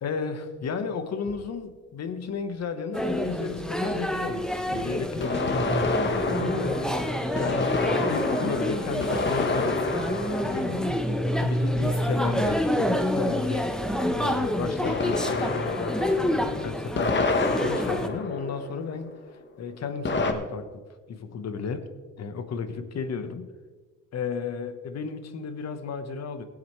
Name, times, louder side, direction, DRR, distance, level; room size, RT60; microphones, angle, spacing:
voice 1, 0.0-9.8 10.2-10.9 11.4-13.7 14.1-19.1 19.6-20.8 21.1-21.8 22.2-23.5 24.1-26.4, left 5 dB, 60° left, 9 dB, 1.3 m, -33 dB
sound 1, 1.3-1.4 5.2-11.7 14.9-19.1 20.0-20.3, left 3 dB, 40° left, 1.2 m, -29 dB
sound 2, 2.9-18.1, equal, ahead, 1.0 m, -28 dB
19.0 x 8.0 x 3.3 m, 1.4 s
cardioid pair, 90°, 30 cm